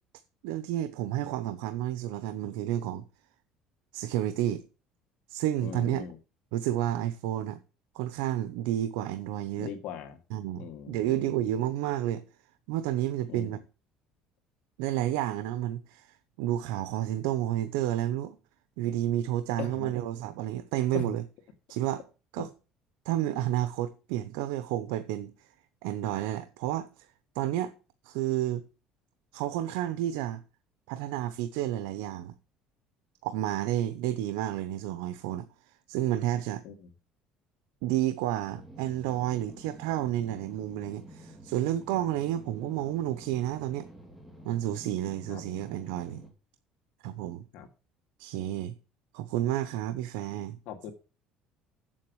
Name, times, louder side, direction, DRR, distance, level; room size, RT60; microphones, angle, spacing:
voice 1, 0.4-3.0 3.9-4.6 5.3-6.0 6.5-7.6 7.9-9.7 10.3-12.2 12.7-13.6 14.8-18.4 18.8-21.2 21.7-22.0 22.3-22.5 23.0-25.5 25.8-27.8 28.0-28.6 29.3-30.4 30.9-32.3 33.2-36.6 37.8-43.9 44.4-46.2 47.0-47.4 48.2-48.7 49.1-50.6, right 12 dB, 90° right, 0.8 m, -31 dB
voice 2, 5.6-6.2 9.6-10.2 10.6-11.4 13.3-13.6 19.6-20.0 20.9-21.2 36.6-36.9 45.3-45.4 47.5-47.7 50.7-50.9, left 7 dB, 70° left, 2.1 m, -39 dB
sound 1, 38.4-46.3, equal, 5° right, 2.8 m, -50 dB
7.7 x 7.6 x 6.2 m
cardioid pair, 110°, 2 cm